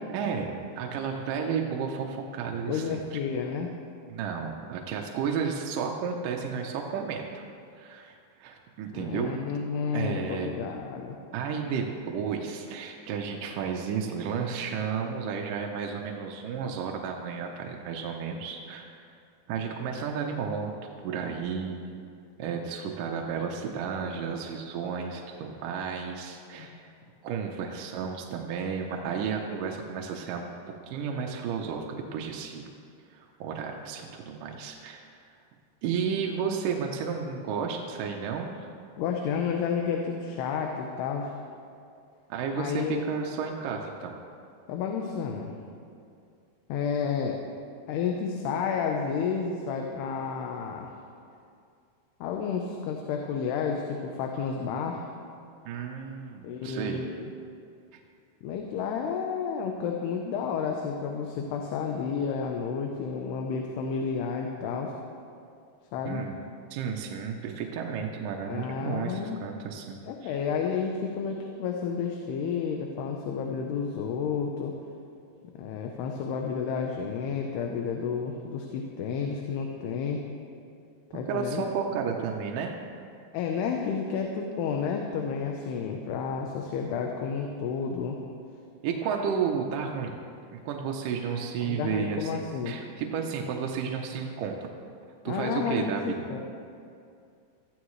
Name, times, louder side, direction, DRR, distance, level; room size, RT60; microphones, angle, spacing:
voice 1, 0.1-3.2 4.1-7.5 7.8-9.3 9.9-10.6 11.3-19.0 19.5-20.7 21.0-21.9 22.4-26.8 27.2-30.5 30.9-32.7 33.1-35.2 35.8-38.7 42.3-44.2 55.7-57.1 57.9-58.0 66.1-66.3 66.7-70.4 81.3-82.8 88.8-90.2 90.5-94.7 95.2-96.2, right 6 dB, 75° right, 1 dB, 2.1 m, -32 dB
voice 2, 2.7-3.7 8.9-11.2 26.6-26.8 39.0-41.3 42.6-43.0 44.7-45.5 46.7-47.4 47.9-50.9 52.2-55.0 56.4-57.3 58.4-64.9 65.9-66.2 68.5-69.4 70.0-74.7 75.5-80.2 81.1-81.7 83.3-88.2 91.6-92.8 95.3-96.4, left 6 dB, 80° left, 2 dB, 2.9 m, -31 dB
20.0 x 14.0 x 3.2 m, 2.4 s
omnidirectional pair, 4.7 m